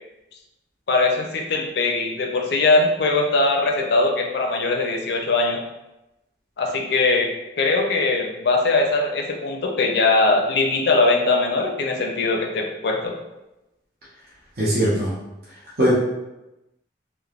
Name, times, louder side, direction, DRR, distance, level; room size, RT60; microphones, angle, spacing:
voice 1, 0.9-5.6 6.6-7.3 7.6-13.1, left 3 dB, 65° left, 2 dB, 0.4 m, -21 dB
voice 2, 14.6-15.1 15.8-15.9, equal, 55° right, -8 dB, 0.7 m, -19 dB
3.2 x 2.0 x 2.4 m, 0.96 s
head